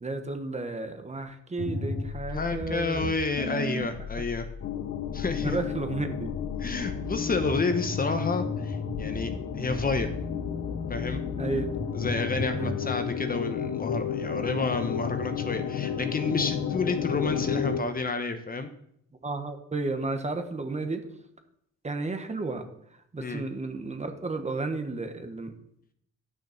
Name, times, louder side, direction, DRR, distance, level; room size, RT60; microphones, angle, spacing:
voice 1, 0.0-3.1 4.2-4.3 5.4-6.3 11.4-11.7 12.5-12.7 19.2-21.1 21.8-25.5, right 3 dB, 25° right, 7 dB, 1.2 m, -33 dB
sound 1, 1.6-12.9, left 3 dB, 75° left, 2.4 m, -35 dB
voice 2, 2.3-4.5 5.1-5.6 6.6-10.1 10.9-11.2 11.9-18.7 23.2-23.4, left 3 dB, 30° left, 8 dB, 1.0 m, -30 dB
sound 2, 4.6-17.8, left 8 dB, 60° left, 0.8 m, -32 dB
9.7 x 6.3 x 5.8 m, 0.72 s
cardioid pair, 90°, 30 cm